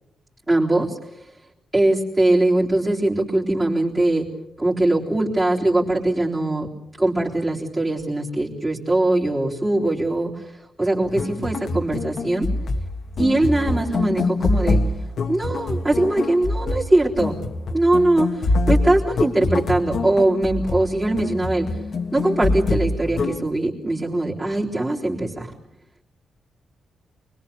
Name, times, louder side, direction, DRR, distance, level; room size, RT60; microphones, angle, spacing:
voice 1, 0.5-1.0 1.7-4.3 4.6-6.7 7.0-10.5 10.8-12.5 13.2-14.8 15.3-17.4 17.7-21.7 22.1-25.5, right 2 dB, 15° right, -6 dB, 3.9 m, -21 dB
sound 1, 11.1-23.4, left 2 dB, 55° left, 1.7 m, -25 dB
29.0 x 21.5 x 7.0 m, 0.77 s
cardioid pair, 130°, 0 cm